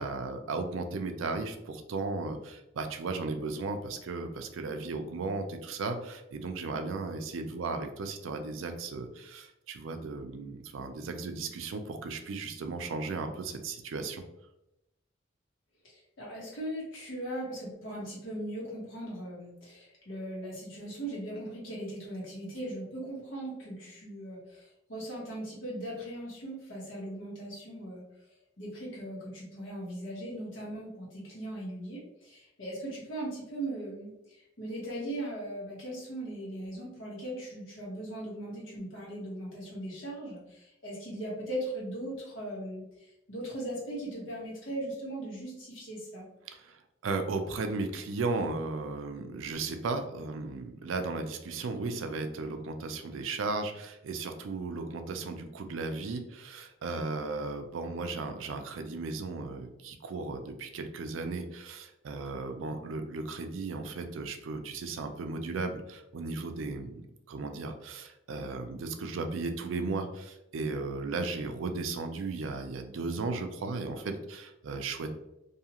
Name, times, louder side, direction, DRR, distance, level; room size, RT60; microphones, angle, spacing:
voice 1, 0.0-14.2 46.5-67.0 67.3-75.1, right 3 dB, 85° right, 6 dB, 0.4 m, -35 dB
voice 2, 15.8-28.0 28.6-46.2, right 1 dB, 80° left, -4 dB, 1.2 m, -39 dB
2.7 x 2.4 x 2.8 m, 0.87 s
head